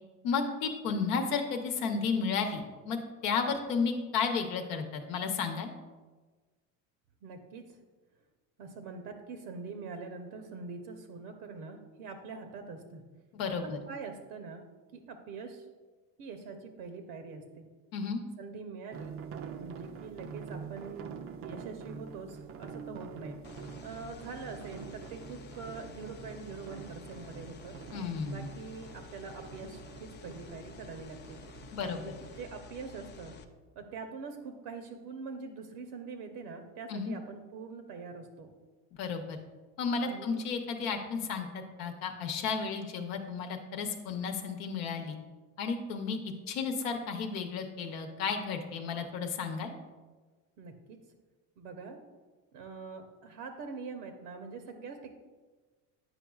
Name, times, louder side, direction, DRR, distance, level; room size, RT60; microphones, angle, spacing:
voice 1, 0.2-3.0 3.2-5.7 13.3-13.8 17.9-18.2 27.9-28.5 31.7-32.0 36.9-37.1 39.0-39.4 39.8-45.2 45.6-46.2 46.5-49.7, left 5 dB, 85° left, 5 dB, 0.9 m, -33 dB
voice 2, 7.2-7.6 8.6-13.0 13.6-14.6 14.9-15.6 16.2-17.7 18.4-19.2 19.5-21.1 21.4-23.4 23.8-27.8 28.2-31.4 31.8-33.4 33.7-38.5 40.0-40.4 50.6-51.0 51.6-52.0 52.5-55.1, right 4 dB, 70° right, 6 dB, 0.8 m, -44 dB
sound 1, 18.9-32.4, right 6 dB, 35° right, 0.4 m, -46 dB
sound 2, 23.4-33.4, left 5 dB, 25° left, 0.4 m, -51 dB
8.9 x 5.1 x 2.3 m, 1.3 s
supercardioid pair, 105°, 42 cm